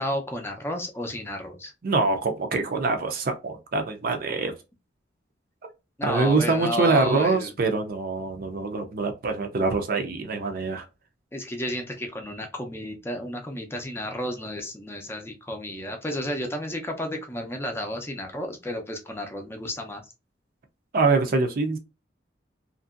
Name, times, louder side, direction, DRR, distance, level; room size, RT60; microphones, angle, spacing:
voice 1, 0.0-1.7 6.0-7.5 11.3-20.1, left 1 dB, 15° left, 0.5 m, -32 dB
voice 2, 1.8-4.5 6.0-10.9 20.9-21.8, right 3 dB, 55° right, 0.5 m, -24 dB
2.9 x 2.6 x 2.4 m
head